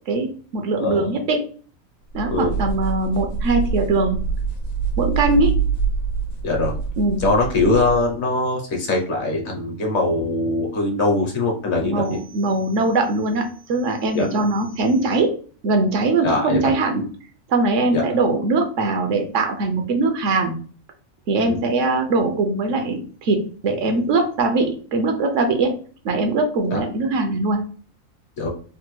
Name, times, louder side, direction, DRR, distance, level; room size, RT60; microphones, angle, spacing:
voice 1, 0.1-1.4 2.1-4.2 5.0-5.6 7.0-7.2 11.8-15.3 15.6-17.0 17.5-20.5 21.3-25.7 26.0-27.6, right 3 dB, 70° right, 5 dB, 0.9 m, -21 dB
sound 1, 2.1-8.1, right 6 dB, 80° left, 1.1 m, -25 dB
voice 2, 6.4-6.7 7.2-12.2 14.1-14.3 16.2-16.7 17.9-18.0 21.4-21.6 26.7-26.8 28.4-28.5, left 2 dB, 60° left, 1 dB, 1.0 m, -22 dB
3.3 x 2.2 x 3.0 m, 0.42 s
omnidirectional pair, 1.4 m